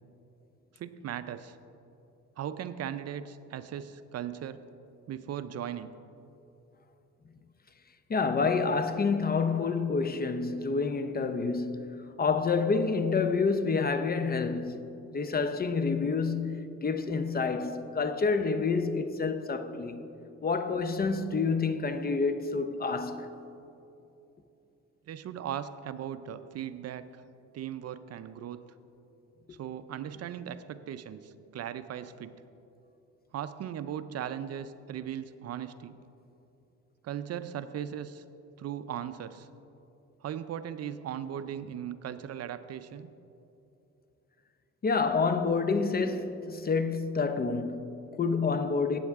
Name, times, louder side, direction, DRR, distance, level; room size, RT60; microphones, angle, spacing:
voice 1, 0.7-1.6 2.4-4.6 5.1-5.9 25.1-27.2 27.5-28.6 29.5-32.3 33.3-36.0 37.0-38.2 38.6-39.5 40.2-43.1, right 9 dB, 55° right, 0.5 m, -38 dB
voice 2, 8.1-14.8 15.1-20.0 20.4-23.3 44.8-49.0, left 4 dB, 30° left, 0.6 m, -28 dB
15.0 x 8.7 x 3.5 m
cardioid pair, 90°, 30 cm